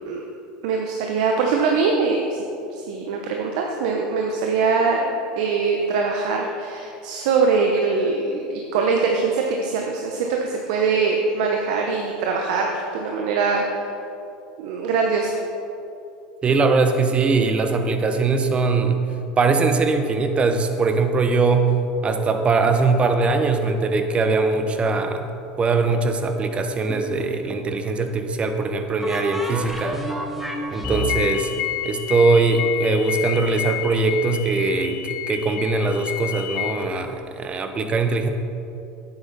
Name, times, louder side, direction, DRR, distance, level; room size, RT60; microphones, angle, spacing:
voice 1, 0.6-2.4 2.9-13.7 14.6-15.4, right 4 dB, 70° right, 1 dB, 0.9 m, -22 dB
voice 2, 16.4-19.0 19.4-21.7 22.0-25.2 25.6-30.0 30.7-31.5 31.8-38.3, right 3 dB, 30° right, 7 dB, 0.9 m, -21 dB
sound 1, 26.9-27.7 29.0-32.7, right 1 dB, 5° right, 1.2 m, -30 dB
sound 2, 30.8-36.7, left 14 dB, 65° left, 0.6 m, -30 dB
9.8 x 8.0 x 4.1 m, 2.7 s
hypercardioid pair, 95°, 4 cm